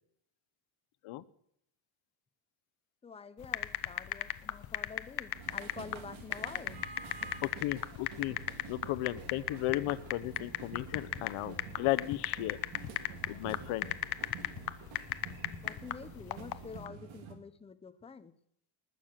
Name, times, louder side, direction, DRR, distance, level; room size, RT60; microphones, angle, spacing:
voice 1, 3.0-6.9 13.6-14.0 15.6-18.3, left 5 dB, 15° left, 12 dB, 0.4 m, -48 dB
sound 1, 3.4-16.9, left 13 dB, 50° left, 0.7 m, -36 dB
sound 2, 5.3-17.4, right 5 dB, 75° right, 2.3 m, -48 dB
voice 2, 7.4-8.4 8.7-12.6 13.3-13.9, left 17 dB, 85° left, 17 dB, 0.8 m, -35 dB
19.5 x 6.6 x 7.4 m, 0.70 s
cardioid pair, 175°, 48 cm